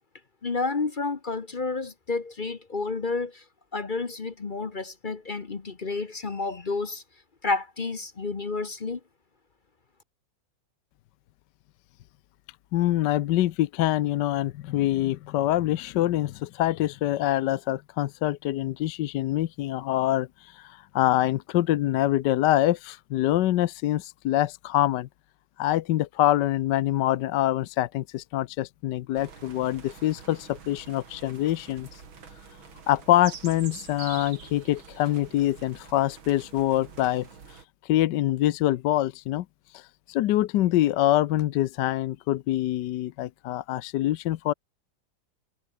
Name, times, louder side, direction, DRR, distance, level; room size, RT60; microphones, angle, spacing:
voice 1, 0.4-3.4 3.7-7.0 7.4-9.0, left 3 dB, 30° left, 0.9 m, -30 dB
voice 2, 12.7-20.3 20.5-25.1 25.6-31.9 32.9-37.3 37.9-39.4 39.7-39.8 40.1-44.5, left 14 dB, 70° left, 1.2 m, -25 dB
sound 1, 29.1-37.6, right 6 dB, 75° right, 3.4 m, -46 dB
omnidirectional pair, 2.2 m